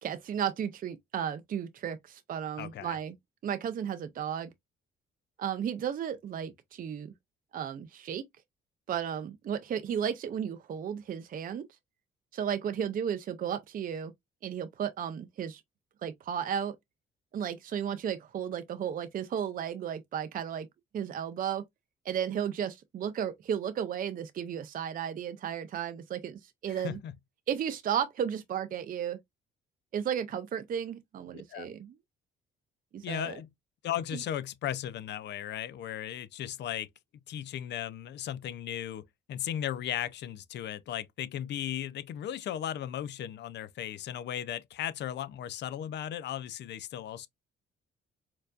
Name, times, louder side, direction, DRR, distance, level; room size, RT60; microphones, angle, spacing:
voice 1, 0.0-3.2 3.4-4.5 5.4-7.1 7.5-8.3 8.9-11.7 12.3-14.1 14.4-15.6 16.0-16.8 17.3-20.7 20.9-21.6 22.0-27.0 27.5-29.2 29.9-31.9 32.9-33.4, right 8 dB, 45° right, 0.5 m, -34 dB
voice 2, 2.6-3.0 26.7-27.1 31.3-31.7 33.0-33.5 33.8-36.9 37.3-47.3, left 11 dB, 60° left, 0.4 m, -36 dB
4.5 x 2.5 x 2.3 m
cardioid pair, 90°, 20 cm